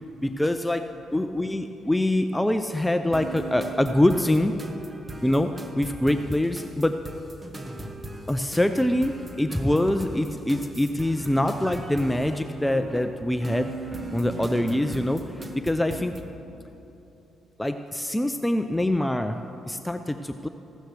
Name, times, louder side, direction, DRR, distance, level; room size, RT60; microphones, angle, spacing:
voice 1, 0.2-0.8 1.1-4.5 5.2-7.0 8.3-13.7 14.1-15.2 15.6-16.1 17.6-20.5, left 1 dB, 5° left, 7 dB, 0.4 m, -24 dB
sound 1, 3.1-16.3, right 1 dB, 20° right, 1.0 m, -38 dB
15.5 x 13.0 x 3.3 m, 2.9 s
cardioid pair, 90°, 0 cm